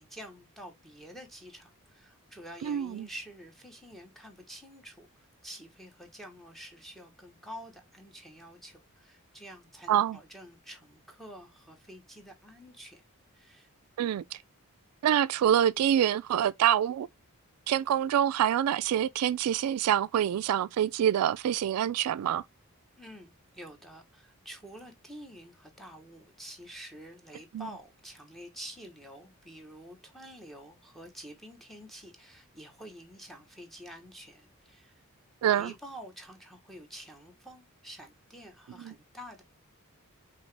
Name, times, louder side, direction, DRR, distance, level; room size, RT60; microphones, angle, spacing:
voice 1, 0.0-13.0 13.3-13.7 14.3-14.4 23.0-34.9 35.5-39.4, equal, ahead, 1.0 m, -48 dB
voice 2, 2.6-3.1 9.9-10.2 14.0-14.4 15.0-17.1 17.7-22.4 27.5-27.7 35.4-35.7 38.8-38.9, right 10 dB, 80° right, 0.3 m, -26 dB
5.4 x 2.9 x 3.2 m
head